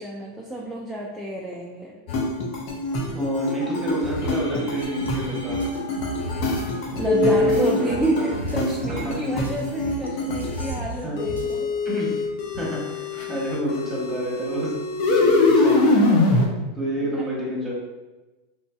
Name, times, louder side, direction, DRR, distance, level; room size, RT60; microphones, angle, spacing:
voice 1, 0.0-2.0 6.9-11.7 17.0-17.3, right 1 dB, 5° right, -4 dB, 0.4 m, -29 dB
sound 1, 2.1-10.8 11.2-16.5, left 2 dB, 55° left, 0.5 m, -24 dB
voice 2, 3.1-5.6 7.2-8.3 9.0-9.2 11.0-11.2 11.8-12.2 12.5-14.8 15.0-16.0 16.3-16.5 16.7-17.7, right 1 dB, 20° right, -4 dB, 1.1 m, -29 dB
sound 2, 4.8-11.6, right 1 dB, 90° right, 0.4 m, -37 dB
3.0 x 2.5 x 2.3 m, 1.1 s
hypercardioid pair, 90°, 0 cm